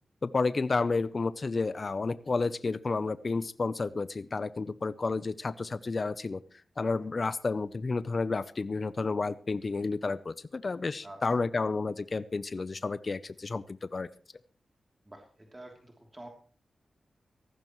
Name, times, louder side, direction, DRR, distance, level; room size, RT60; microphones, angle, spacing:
voice 1, 0.2-6.4 6.8-14.1, left 3 dB, 50° left, 15 dB, 0.6 m, -31 dB
voice 2, 15.1-16.3, right 1 dB, 20° right, 1 dB, 3.0 m, -48 dB
18.0 x 15.0 x 3.1 m, 0.40 s
cardioid pair, 60°, 0 cm